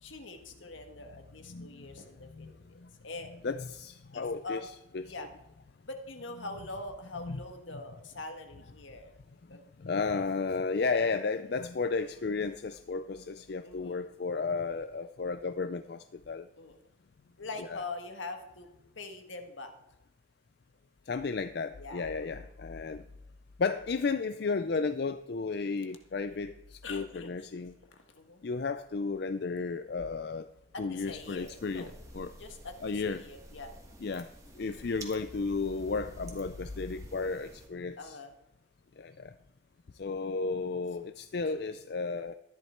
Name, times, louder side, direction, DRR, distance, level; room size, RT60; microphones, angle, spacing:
voice 1, 0.0-3.3 4.1-4.7 5.0-5.3 5.9-9.1 9.5-9.6 13.6-14.1 16.6-16.7 17.4-18.7 19.0-19.7 21.8-22.1 26.8-27.3 27.9-28.4 30.7-31.9 32.4-33.8 38.0-38.3, left 3 dB, 80° left, 5 dB, 1.7 m, -43 dB
voice 2, 1.5-1.9 2.4-2.5 3.4-5.0 7.2-7.4 9.8-16.5 17.6-17.8 21.1-23.0 23.6-27.7 28.4-30.5 30.8-32.3 32.8-33.2 34.0-34.3 34.6-38.2 39.0-39.3 40.0-42.3, left 4 dB, 55° left, 9 dB, 0.4 m, -33 dB
sound 1, 31.0-37.7, right 1 dB, 15° right, 1.6 m, -51 dB
13.5 x 11.0 x 4.5 m, 0.86 s
head